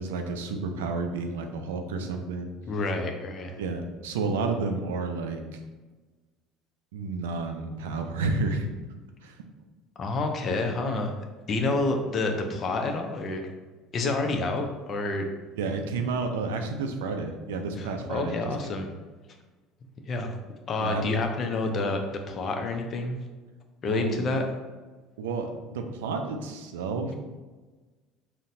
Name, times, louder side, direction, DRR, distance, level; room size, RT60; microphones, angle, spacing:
voice 1, 0.0-2.5 3.6-5.6 6.9-8.7 9.2-9.5 15.6-18.7 20.8-21.1 23.9-24.3 25.2-27.1, right 3 dB, 85° right, 5 dB, 0.3 m, -31 dB
voice 2, 2.7-3.6 10.0-11.1 11.5-13.4 13.9-15.3 17.8-18.9 20.1-20.3 20.7-23.2 23.8-24.4, left 2 dB, 45° left, 4 dB, 0.5 m, -28 dB
3.9 x 2.1 x 2.6 m, 1.3 s
hypercardioid pair, 80°, 0 cm